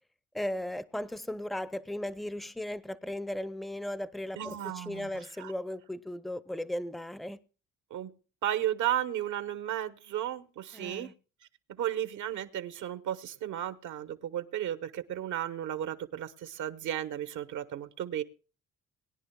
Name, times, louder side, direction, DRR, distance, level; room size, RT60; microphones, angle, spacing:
voice 1, 0.3-7.4 10.7-11.1, left 1 dB, ahead, 0.5 m, -36 dB
voice 2, 4.4-5.5 7.9-8.1 8.4-11.1 11.7-18.2, right 11 dB, 75° right, 1.0 m, -34 dB
21.5 x 10.0 x 2.2 m
cardioid pair, 90°, 30 cm